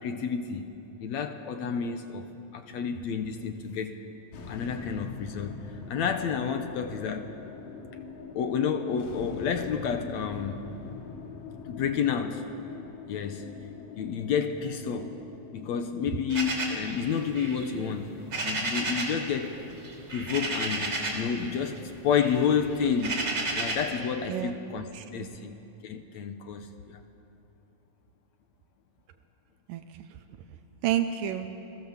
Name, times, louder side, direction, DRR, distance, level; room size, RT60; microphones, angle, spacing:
voice 1, 0.0-0.7 1.0-2.3 2.5-4.0 4.5-5.6 5.9-7.4 8.3-10.6 11.7-12.5 13.1-13.5 14.0-15.2 15.5-18.1 18.4-19.6 20.1-27.0, left 7 dB, 65° left, 6 dB, 2.0 m, -30 dB
sound 1, 4.3-20.7, left 5 dB, 85° left, 3.3 m, -43 dB
sound 2, 16.3-19.2 19.5-21.3 21.7-23.9, right 2 dB, 30° right, 3.9 m, -33 dB
voice 2, 24.9-25.4 29.7-30.1 30.8-31.5, right 11 dB, 85° right, 7 dB, 2.5 m, -30 dB
30.0 x 20.5 x 7.4 m, 2.9 s
omnidirectional pair, 3.9 m